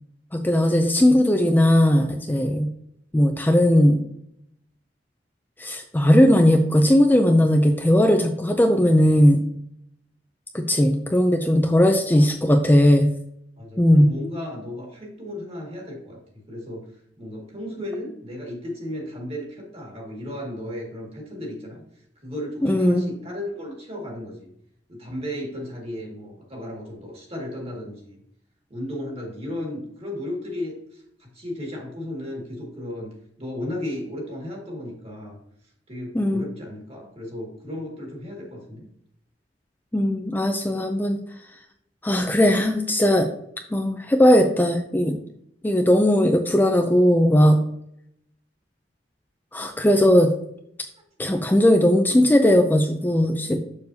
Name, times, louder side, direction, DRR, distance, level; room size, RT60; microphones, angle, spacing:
voice 1, 0.3-2.7 3.1-4.1 5.6-9.4 10.5-13.1 13.8-14.1 22.6-23.1 36.1-36.5 39.9-41.2 42.0-43.3 43.7-45.2 45.6-47.6 49.5-50.3 51.2-53.6, left 1 dB, 10° left, 4 dB, 0.4 m, -18 dB
voice 2, 13.6-16.2 16.5-16.9 17.2-21.8 22.2-24.5 24.9-28.2 28.7-33.1 33.4-35.4 35.9-38.9, left 1 dB, 35° right, 0 dB, 2.0 m, -34 dB
6.8 x 6.6 x 2.7 m, 0.73 s
head